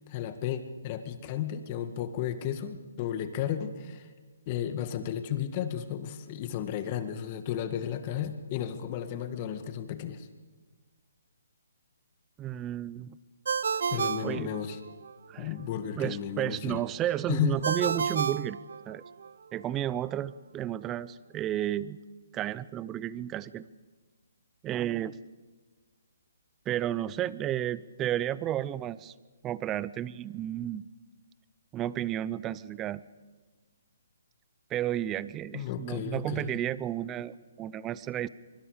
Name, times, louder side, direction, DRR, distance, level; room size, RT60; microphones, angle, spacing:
voice 1, 0.1-4.1 4.5-10.3 13.9-14.8 15.4-16.8 17.3-17.6 35.5-36.5, left 10 dB, 30° left, 8 dB, 1.9 m, -33 dB
voice 2, 12.4-13.2 14.2-14.5 15.3-15.5 16.0-18.6 18.9-19.0 19.5-22.0 22.3-23.6 24.6-25.2 26.7-29.1 29.4-30.8 31.7-33.0 34.7-38.3, right 12 dB, 15° right, 19 dB, 0.6 m, -32 dB
Ringtone, 13.5-15.1 17.6-19.3, right 6 dB, 65° right, 0.8 m, -31 dB
24.0 x 24.0 x 5.1 m, 1.4 s
hypercardioid pair, 150°, 0 cm